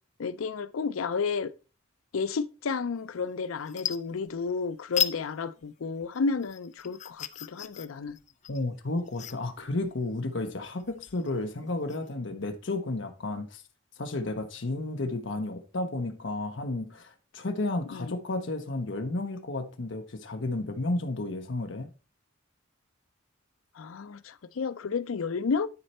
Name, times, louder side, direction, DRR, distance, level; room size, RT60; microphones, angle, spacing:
voice 1, 0.2-1.5 2.1-8.2 17.9-18.1 23.8-25.7, left 5 dB, 90° left, 0.5 m, -31 dB
sound 1, 3.1-3.3 3.6-4.6 4.9-5.2 5.6-12.1, left 9 dB, 35° left, 0.4 m, -36 dB
voice 2, 8.5-13.6 14.0-21.9, left 2 dB, 65° left, 0.8 m, -32 dB
9.6 x 4.3 x 4.2 m
head